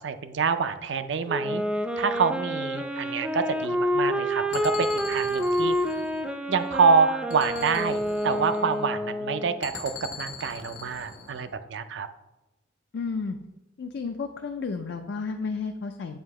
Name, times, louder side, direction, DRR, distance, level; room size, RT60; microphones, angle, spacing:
voice 1, 0.0-1.6 2.0-5.8 6.5-8.0 8.2-9.9 10.2-12.1, right 5 dB, 70° right, 11 dB, 0.4 m, -26 dB
Wind instrument woodwind instrument, 1.3-9.6, equal, 5° right, 0.3 m, -28 dB
sound 1, 4.5-6.8 7.3-8.9 9.6-11.5, left 5 dB, 90° left, 1.2 m, -41 dB
voice 2, 12.9-13.4 13.8-16.2, left 4 dB, 65° left, 5 dB, 0.4 m, -32 dB
7.9 x 2.7 x 4.7 m, 0.98 s
head